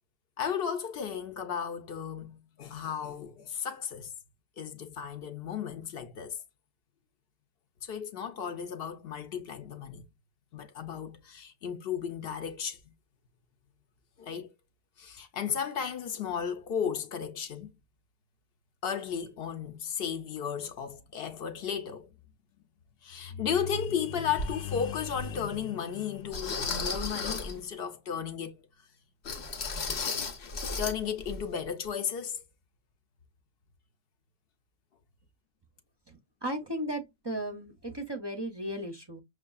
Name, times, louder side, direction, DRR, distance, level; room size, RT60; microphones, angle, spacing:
voice 1, 0.4-4.1 4.6-6.4 7.8-10.0 10.5-12.8 14.2-14.5 15.0-17.7 18.8-22.1 23.0-28.7 30.8-32.4, left 7 dB, 70° left, 0.8 m, -34 dB
sound 1, 24.4-24.5 25.2-25.3 26.3-27.6 29.2-31.0 31.2-31.4 31.8-31.9, left 4 dB, 85° left, 1.2 m, -34 dB
voice 2, 36.1-39.2, right 1 dB, 30° right, 0.6 m, -36 dB
6.0 x 2.5 x 2.3 m
omnidirectional pair, 1.1 m